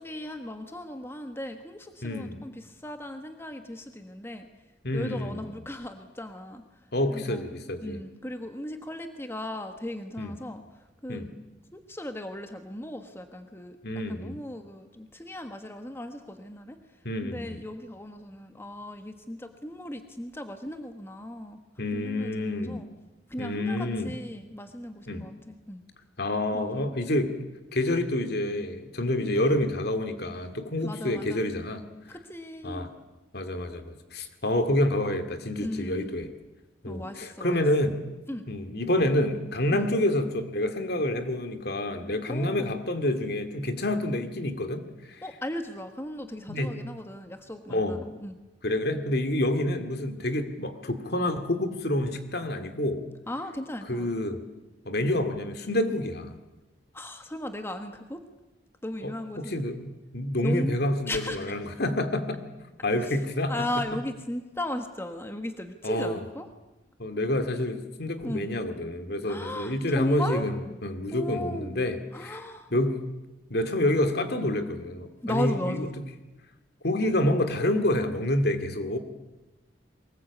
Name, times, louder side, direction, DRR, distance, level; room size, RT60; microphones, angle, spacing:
voice 1, 0.0-4.5 4.9-6.6 7.1-7.5 7.8-11.2 11.7-13.8 14.1-16.8 17.2-21.6 21.9-22.9 23.3-25.8 26.5-26.8 29.3-29.5 30.8-31.5 32.1-32.9 35.6-36.1 36.8-37.6 38.3-38.5 39.7-39.9 42.3-42.8 45.2-48.3 53.3-54.1 56.9-58.2 58.8-59.6 60.4-60.7 61.1-61.4 63.0-63.2 63.5-66.5 68.2-68.5 69.2-70.5 71.1-71.7 72.1-72.7 75.2-75.9, left 1 dB, 15° left, 7 dB, 1.3 m, -36 dB
voice 2, 2.0-2.4 4.8-5.5 6.9-8.0 10.2-10.3 11.1-11.3 13.8-14.4 17.0-17.6 21.8-22.8 23.4-24.1 25.1-25.3 26.2-27.4 27.7-31.8 32.6-32.9 33.3-36.3 36.8-38.0 38.5-45.2 46.5-46.8 47.7-48.1 48.6-53.0 53.9-54.4 54.8-56.4 59.0-62.4 62.8-63.5 65.8-66.2 67.0-70.5 70.8-72.4 72.7-73.0 73.5-75.9 76.8-79.0, left 1 dB, 60° left, 8 dB, 2.3 m, -28 dB
23.0 x 20.0 x 8.4 m, 1.1 s
head